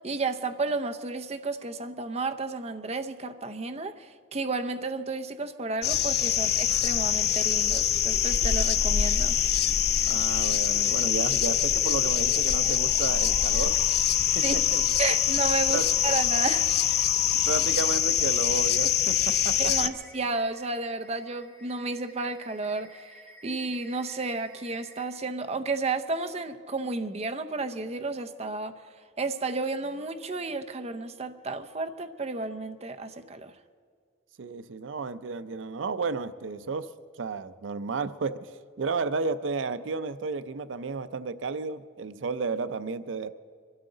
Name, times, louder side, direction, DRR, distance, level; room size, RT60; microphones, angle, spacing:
voice 1, 0.0-9.4 14.4-14.6 15.0-16.7 19.6-23.1 23.4-28.8 29.2-33.5, right 3 dB, 35° right, 0.7 m, -32 dB
sound 1, 5.8-19.9, left 10 dB, 55° left, 0.5 m, -24 dB
sound 2, 7.1-25.1, equal, 10° left, 2.2 m, -50 dB
voice 2, 10.0-13.8 14.3-14.4 14.7-14.8 15.7-15.9 17.4-19.7 34.4-36.9 37.2-38.5 38.8-43.3, right 4 dB, 85° right, 0.5 m, -32 dB
24.0 x 13.0 x 3.9 m
head